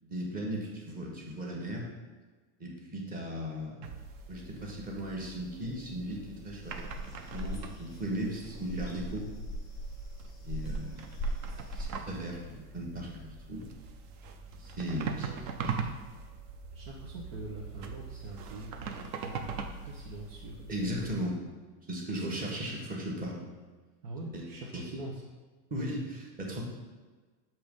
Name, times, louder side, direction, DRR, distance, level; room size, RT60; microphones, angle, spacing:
voice 1, 0.0-1.9 2.6-3.9 4.3-9.3 10.4-11.2 11.7-13.6 14.5-15.3 15.6-15.7 20.7-21.4 21.9-23.5 24.3-24.4 24.7-24.8 25.7-26.6, equal, 20° right, -2 dB, 1.1 m, -37 dB
sound 1, 3.8-21.1, right 5 dB, 40° right, 0.5 m, -42 dB
sound 2, 6.6-11.9, right 1 dB, 10° left, 0.7 m, -38 dB
voice 2, 16.7-21.2 24.0-25.2, right 2 dB, 75° right, -3 dB, 1.2 m, -43 dB
6.9 x 3.1 x 5.2 m, 1.4 s
supercardioid pair, 145°, 45 cm